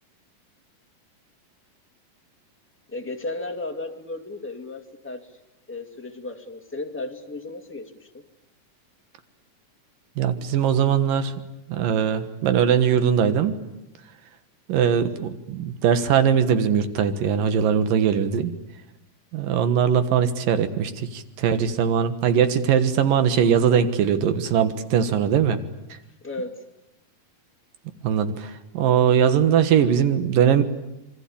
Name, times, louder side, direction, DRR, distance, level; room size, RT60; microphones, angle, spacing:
voice 1, 2.9-5.3 5.7-8.2 14.7-15.0 26.2-26.6, left 2 dB, 5° left, 3 dB, 1.4 m, -34 dB
voice 2, 10.2-11.3 11.7-13.6 14.7-18.5 19.3-25.6 28.0-30.6, right 8 dB, 85° right, 10 dB, 3.2 m, -21 dB
27.0 x 23.5 x 8.6 m, 0.90 s
omnidirectional pair, 3.8 m